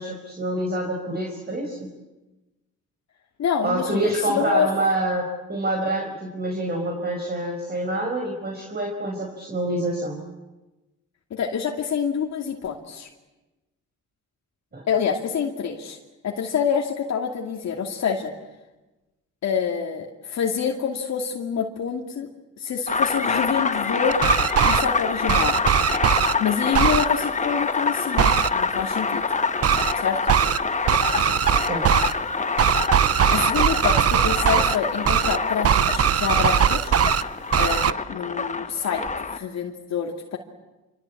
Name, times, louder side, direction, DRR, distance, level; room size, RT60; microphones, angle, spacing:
voice 1, 0.0-1.9 3.6-10.2 14.7-14.8 31.6-31.9, right 1 dB, 35° right, 1 dB, 5.5 m, -26 dB
voice 2, 3.4-4.7 11.3-13.1 14.9-16.0 16.2-18.3 19.4-22.3 22.6-24.2 24.6-25.5 26.4-29.2 29.9-30.2 33.3-37.0 37.6-39.0 39.3-40.4, left 7 dB, 60° left, 1 dB, 2.6 m, -26 dB
sound 1, 22.9-39.4, left 4 dB, 25° left, 1.4 m, -26 dB
sound 2, 24.1-24.8 25.3-26.3 26.7-27.0 28.2-28.5 29.6-29.9 30.3-30.6 30.9-32.1 32.6-34.8 35.0-35.4 35.6-37.2 37.5-37.9, right 9 dB, 50° right, 0.9 m, -20 dB
27.0 x 25.0 x 8.6 m, 1.1 s
cardioid pair, 90°, 30 cm